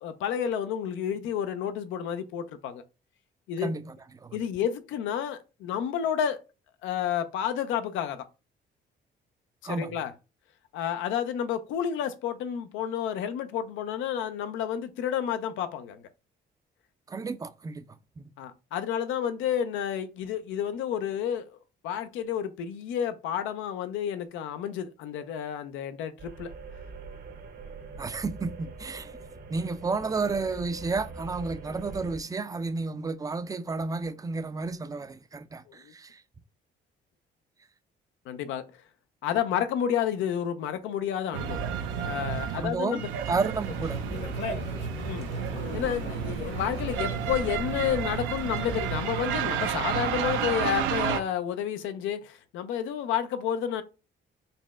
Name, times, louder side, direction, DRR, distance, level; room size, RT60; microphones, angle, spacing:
voice 1, 0.0-2.8 3.5-3.7 4.3-6.4 6.8-8.2 9.6-10.1 10.7-16.0 18.4-21.6 21.8-26.5 35.7-35.9 38.3-38.8 39.2-41.7 42.0-43.1 45.0-45.3 45.7-53.8, left 9 dB, 90° left, 0.5 m, -30 dB
voice 2, 3.6-4.4 9.6-9.9 17.1-17.8 18.2-18.3 28.0-29.2 29.5-36.2 42.6-43.0 43.3-44.0, right 4 dB, 20° right, 0.4 m, -32 dB
sound 1, 26.2-32.2, right 3 dB, 55° right, 0.7 m, -43 dB
sound 2, 41.3-51.2, right 8 dB, 90° right, 0.5 m, -31 dB
Conversation, 43.6-48.9, left 1 dB, 65° left, 1.3 m, -38 dB
4.1 x 2.1 x 3.5 m
cardioid pair, 80°, 20 cm